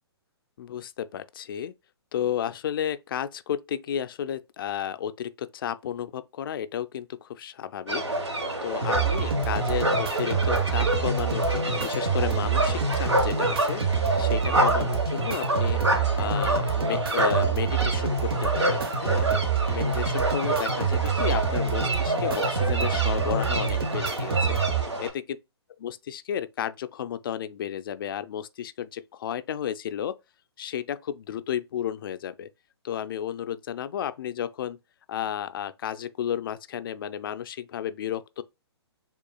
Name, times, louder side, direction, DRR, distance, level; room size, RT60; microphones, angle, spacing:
voice 1, 0.6-1.7 2.1-8.0 8.6-15.8 16.1-19.3 19.7-24.6 25.0-25.1 25.8-30.1 30.6-32.5 32.8-34.8 35.1-38.4, left 9 dB, 55° left, 0.4 m, -32 dB
sound 1, 7.9-25.1, right 1 dB, 85° right, 1.4 m, -28 dB
sound 2, 8.8-24.8, right 6 dB, 60° right, 1.0 m, -27 dB
6.8 x 2.4 x 2.3 m
hypercardioid pair, 130°, 14 cm